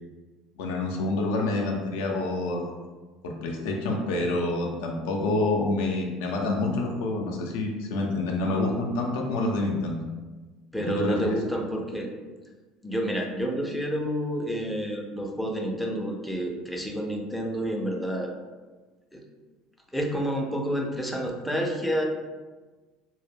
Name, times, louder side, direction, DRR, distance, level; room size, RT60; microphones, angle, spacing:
voice 1, 0.6-2.8 3.2-10.0 10.8-11.4, left 2 dB, 85° left, 0 dB, 0.4 m, -27 dB
voice 2, 10.7-12.1 12.8-18.3 19.1-19.2 19.9-22.0, equal, ahead, 0 dB, 0.4 m, -29 dB
2.2 x 2.0 x 3.2 m, 1.3 s
supercardioid pair, 95°, 0 cm